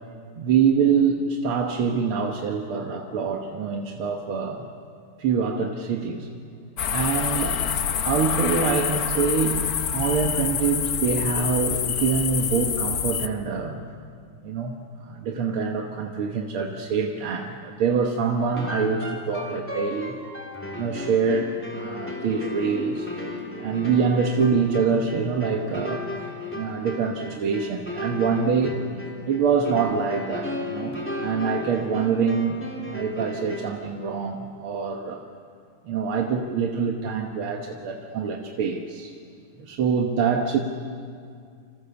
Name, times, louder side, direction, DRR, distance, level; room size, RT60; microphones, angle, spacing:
voice 1, 0.4-4.7 5.2-6.3 6.9-7.6 8.1-9.6 9.9-13.8 14.4-20.2 20.7-23.1 23.6-26.1 26.5-28.8 29.3-32.6 32.9-35.2 35.8-39.1 39.6-40.6, right 6 dB, 85° right, 3 dB, 2.1 m, -25 dB
sound 1, 6.8-13.3, left 8 dB, 55° left, 1.2 m, -26 dB
sound 2, 18.6-33.9, left 2 dB, 5° left, 3.6 m, -35 dB
29.5 x 25.5 x 7.0 m, 2.3 s
omnidirectional pair, 2.3 m